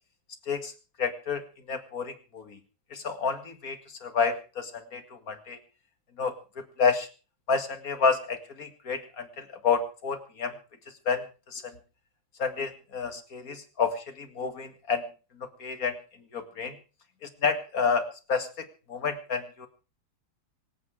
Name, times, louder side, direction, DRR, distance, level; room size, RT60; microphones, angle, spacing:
voice 1, 1.0-2.6 2.9-5.6 6.2-7.1 7.5-10.6 11.1-11.2 11.5-11.8 12.4-15.1 15.4-16.0 16.3-16.8 17.2-19.7, left 5 dB, 45° left, 8 dB, 2.3 m, -30 dB
25.5 x 8.7 x 4.8 m, 0.35 s
omnidirectional pair, 2.2 m